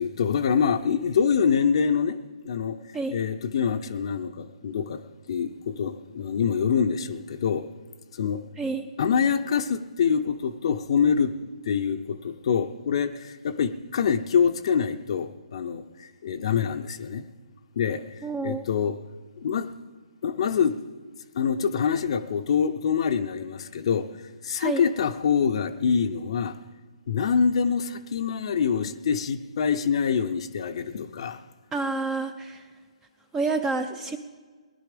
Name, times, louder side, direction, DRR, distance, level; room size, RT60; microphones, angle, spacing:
voice 1, 0.0-2.2 2.4-2.8 3.1-5.0 5.3-7.7 8.2-8.4 9.0-11.3 11.6-17.3 17.8-19.0 19.4-19.7 20.2-20.8 21.3-24.1 24.4-26.6 27.1-31.4, left 6 dB, 50° left, 0.7 m, -25 dB
voice 2, 18.2-18.6 24.6-24.8 31.7-32.6 33.3-34.2, right 3 dB, 10° right, 0.5 m, -28 dB
19.0 x 11.0 x 5.1 m
hypercardioid pair, 155°, 4 cm